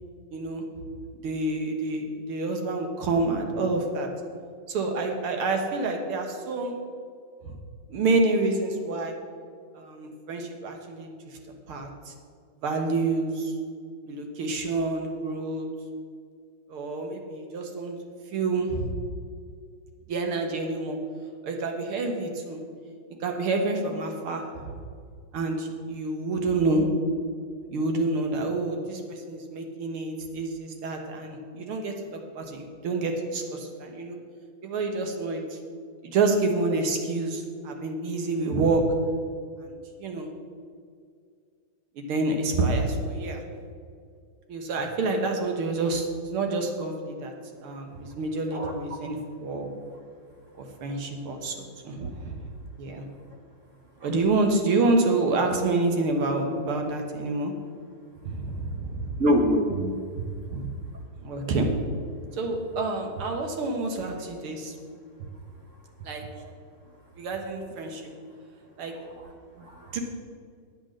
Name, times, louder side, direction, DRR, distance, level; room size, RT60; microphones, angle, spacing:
voice 1, 0.3-0.6 1.2-4.1 4.7-6.8 7.4-7.6 7.9-9.2 9.7-11.4 11.7-12.1 12.6-13.5 14.1-15.7 16.7-18.0 18.3-18.9 20.1-21.0 21.4-22.6 23.2-24.7 25.3-26.9 27.7-34.2 34.6-35.6 36.0-38.8 39.6-40.3 42.0-43.4 44.5-47.3 47.6-49.7 50.8-52.5 52.8-53.1 54.0-57.5 58.3-59.2 60.5-60.7 61.2-61.7 62.3-64.7 66.0-66.2 67.2-68.1 68.8-69.0 69.6-69.7 69.9-70.0, right 3 dB, 85° right, 3 dB, 2.2 m, -28 dB
voice 2, 59.2-60.2 66.4-66.5 69.0-69.3 69.6-70.0, equal, 60° right, 2 dB, 0.8 m, -26 dB
9.9 x 8.4 x 6.4 m, 2.2 s
omnidirectional pair, 2.3 m